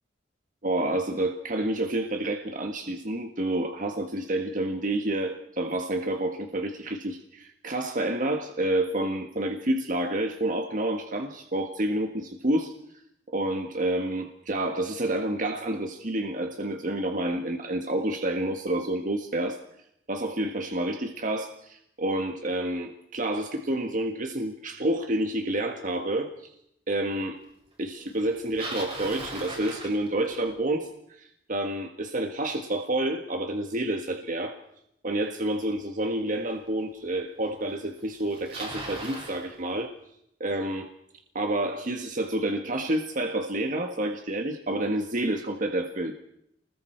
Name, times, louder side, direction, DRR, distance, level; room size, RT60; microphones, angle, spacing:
voice 1, 0.6-12.7 13.3-19.6 20.1-26.5 26.9-27.4 27.8-30.9 31.2-34.6 35.0-39.9 40.4-40.9 41.3-46.2, right 1 dB, 50° right, 5 dB, 1.5 m, -29 dB
Bicycle, 28.2-30.6 35.6-35.7 36.6-36.7 37.7-37.8 38.0-39.4, right 2 dB, 35° right, 6.6 m, -38 dB
29.0 x 21.0 x 4.5 m, 0.77 s
head